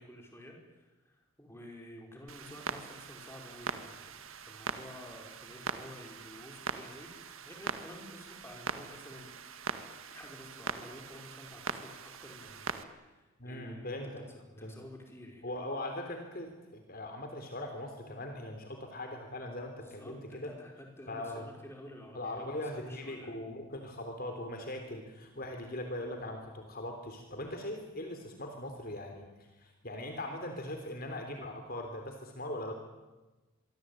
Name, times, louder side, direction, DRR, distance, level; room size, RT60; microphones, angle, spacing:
voice 1, 0.0-9.3 10.1-14.0 14.3-15.5 19.8-23.3, left 1 dB, 10° left, 1 dB, 5.3 m, -51 dB
Clock, 2.3-12.8, right 5 dB, 65° right, 1.9 m, -42 dB
voice 2, 13.4-14.2 14.6-14.8 15.4-20.5 21.1-21.4 22.1-29.3 29.6-32.7, left 1 dB, 40° left, 4 dB, 3.4 m, -40 dB
25.5 x 24.0 x 9.0 m, 1.1 s
head